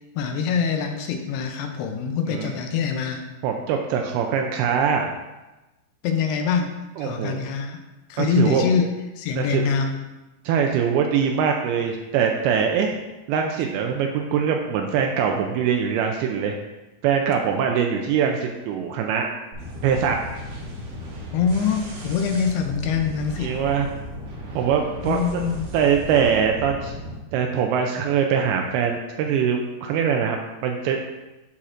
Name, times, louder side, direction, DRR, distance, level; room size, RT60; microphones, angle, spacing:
voice 1, 0.2-3.2 6.0-7.8 8.1-8.9 9.2-10.0 21.3-23.6 25.1-25.7, left 6 dB, 85° left, 4 dB, 2.6 m, -24 dB
voice 2, 3.4-5.1 7.0-7.4 8.2-8.7 9.4-9.7 10.5-12.9 13.3-16.6 17.0-19.3 19.8-20.2 23.4-23.9 24.6-25.4 25.7-27.0 27.3-30.4 30.6-31.0, right 7 dB, 85° right, 3 dB, 2.4 m, -22 dB
sound 1, 19.5-27.2, left 1 dB, 65° right, 2.3 m, -36 dB
11.5 x 4.2 x 2.5 m, 1.1 s
omnidirectional pair, 4.6 m